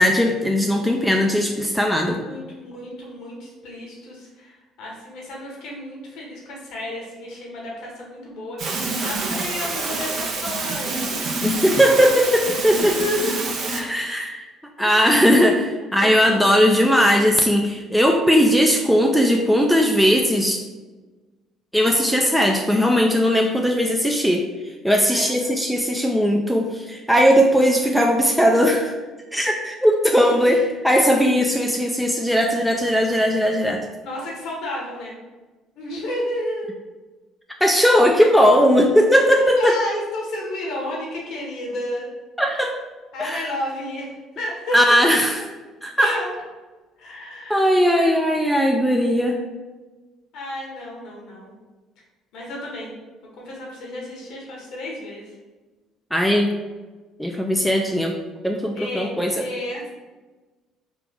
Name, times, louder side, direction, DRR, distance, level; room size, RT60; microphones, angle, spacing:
voice 1, 0.0-2.2 11.4-13.0 13.8-14.5 14.8-20.6 21.7-24.4 24.8-28.9 29.3-33.8 37.6-39.7 42.4-42.7 43.2-43.5 44.7-45.4 45.8-46.1 47.5-49.4 56.1-56.5 57.2-58.1 58.4-59.4, equal, ahead, 2 dB, 0.4 m, -18 dB
voice 2, 0.7-1.2 2.2-11.2 12.7-13.8 14.8-14.9 16.0-16.3 25.1-25.5 30.3-30.6 34.0-35.1 35.7-36.7 39.3-42.1 43.1-44.8 46.0-46.3 47.0-47.6 47.9-48.1 50.3-51.5 52.3-52.9 53.4-55.3 58.7-59.1 59.3-59.9, left 1 dB, 70° left, -2 dB, 1.1 m, -32 dB
sound 1, 8.6-13.8, right 3 dB, 55° right, 0.6 m, -27 dB
3.2 x 2.5 x 3.6 m, 1.2 s
supercardioid pair, 75°, 0 cm